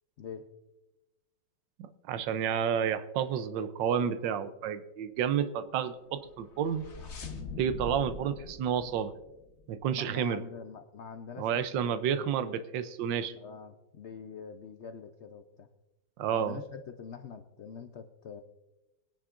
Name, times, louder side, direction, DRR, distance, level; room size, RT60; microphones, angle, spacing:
voice 1, 1.8-6.9 7.6-9.1 9.7-10.4 11.4-13.4 16.2-16.6, right 8 dB, 80° right, 12 dB, 1.4 m, -30 dB
sound 1, 6.2-9.9, left 4 dB, 45° left, 1.2 m, -43 dB
voice 2, 9.9-11.7 12.1-12.3 13.4-15.7 16.3-18.4, left 6 dB, 65° left, 7 dB, 0.7 m, -44 dB
22.0 x 10.5 x 2.5 m, 1.0 s
omnidirectional pair, 2.0 m